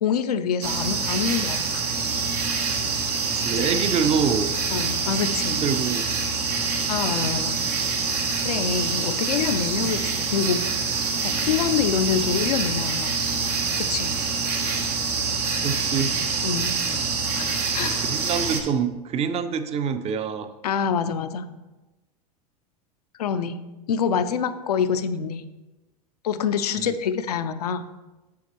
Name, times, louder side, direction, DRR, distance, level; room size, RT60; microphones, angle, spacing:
voice 1, 0.0-1.8 4.7-5.6 6.9-7.6 8.4-13.2 13.9-14.1 16.4-16.7 17.3-18.0 20.6-21.5 23.2-23.6 23.9-25.5 26.2-27.9, left 7 dB, 75° left, 11 dB, 0.5 m, -26 dB
sound 1, 0.6-18.6, right 4 dB, 80° right, 1.2 m, -26 dB
voice 2, 3.3-4.6 5.5-6.1 15.6-16.1 17.8-20.5 26.8-27.0, right 6 dB, 30° right, 11 dB, 0.6 m, -26 dB
7.0 x 7.0 x 3.1 m, 1.1 s
hypercardioid pair, 85°, 20 cm